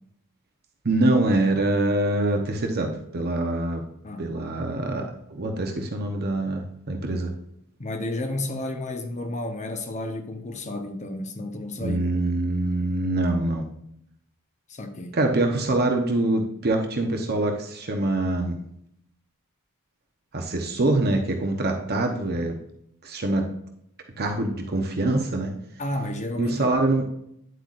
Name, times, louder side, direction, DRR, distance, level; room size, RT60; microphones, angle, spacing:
voice 1, 0.8-3.8 4.2-7.3 11.8-13.7 15.1-18.6 20.3-22.6 23.0-23.5 24.2-25.5 26.4-27.1, right 2 dB, 45° right, 1.0 m, -24 dB
voice 2, 7.8-12.0 14.7-15.1 25.8-26.8, left 1 dB, 35° left, 1.0 m, -32 dB
9.8 x 7.8 x 2.6 m
head